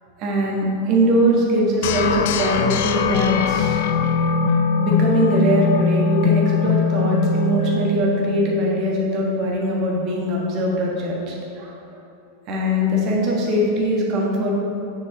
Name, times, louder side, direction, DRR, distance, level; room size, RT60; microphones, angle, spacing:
voice 1, 0.2-3.8 4.8-11.7 12.5-14.5, equal, 40° right, -3 dB, 1.4 m, -21 dB
sound 1, 1.8-8.8, left 5 dB, 50° left, 0.3 m, -21 dB
6.5 x 6.1 x 3.0 m, 2.8 s
figure-of-eight pair, 90°, 0 cm